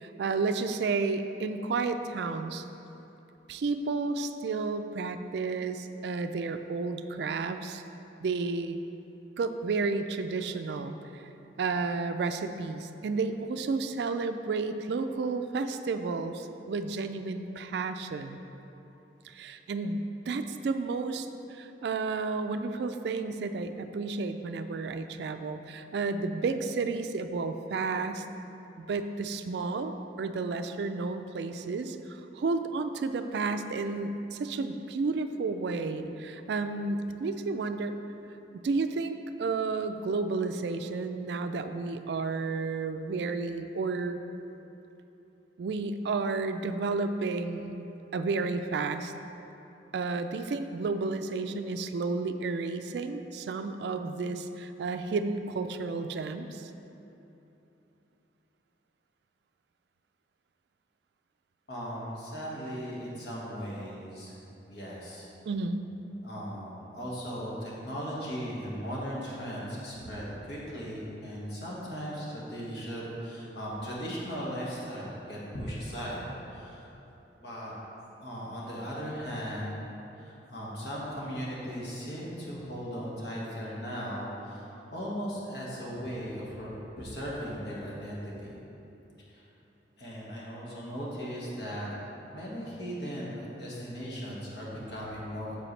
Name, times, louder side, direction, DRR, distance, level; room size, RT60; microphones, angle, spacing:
voice 1, 0.0-2.6 3.5-7.8 8.2-8.8 9.4-11.2 11.6-18.4 19.2-28.2 28.8-38.0 38.5-44.2 45.6-47.8 48.1-49.1 49.9-56.7 65.5-65.9, right 4 dB, 65° right, 8 dB, 0.3 m, -32 dB
voice 2, 61.7-64.3 64.7-65.3 66.2-76.2 76.5-76.9 77.4-77.7 78.2-79.8 80.2-86.7 87.0-88.6 89.3-89.4 90.0-91.9 92.3-95.6, equal, 60° left, -5 dB, 1.7 m, -37 dB
7.7 x 6.9 x 3.2 m, 3.0 s
head